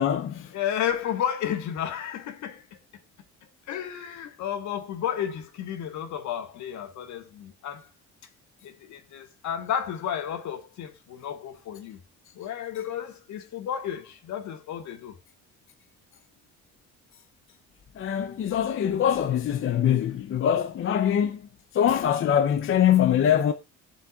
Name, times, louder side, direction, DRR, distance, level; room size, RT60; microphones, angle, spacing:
voice 1, 0.0-0.5 18.0-21.4 21.7-23.5, left 9 dB, 45° left, 0.7 m, -23 dB
voice 2, 0.5-2.6 3.7-7.9 8.6-12.0 12.3-15.1, left 9 dB, 70° left, 1.6 m, -32 dB
19.5 x 7.4 x 2.4 m
cardioid pair, 120°, 30 cm